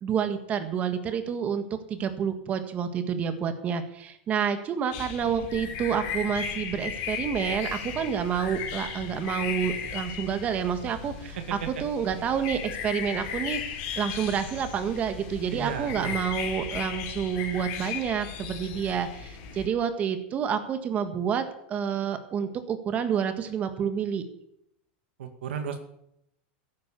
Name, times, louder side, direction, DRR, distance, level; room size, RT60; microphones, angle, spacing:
voice 1, 0.0-1.6 1.9-13.6 14.0-24.2, right 7 dB, 25° right, 9 dB, 1.7 m, -29 dB
sound 1, 4.9-19.7, left 7 dB, 45° left, 3.5 m, -36 dB
voice 2, 11.4-11.7 15.5-16.2 25.2-25.8, right 7 dB, 80° right, 7 dB, 2.2 m, -34 dB
14.0 x 11.0 x 7.0 m, 0.77 s
supercardioid pair, 155°, 6 cm